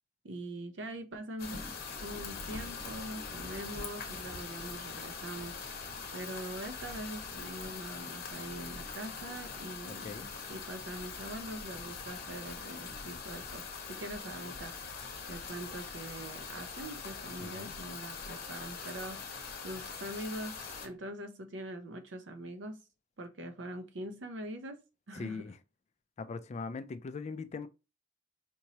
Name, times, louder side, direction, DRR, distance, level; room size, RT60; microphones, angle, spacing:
voice 1, 0.2-5.6 6.1-10.2 10.5-15.0 15.3-22.8 23.2-24.8 25.1-25.5, right 1 dB, 65° right, 0.7 m, -43 dB
sound 1, 1.4-20.9, left 5 dB, 55° left, 0.9 m, -43 dB
voice 2, 9.9-10.3 17.4-17.7 25.1-25.6 26.2-27.7, left 4 dB, 35° left, 0.3 m, -40 dB
4.4 x 3.0 x 2.8 m
head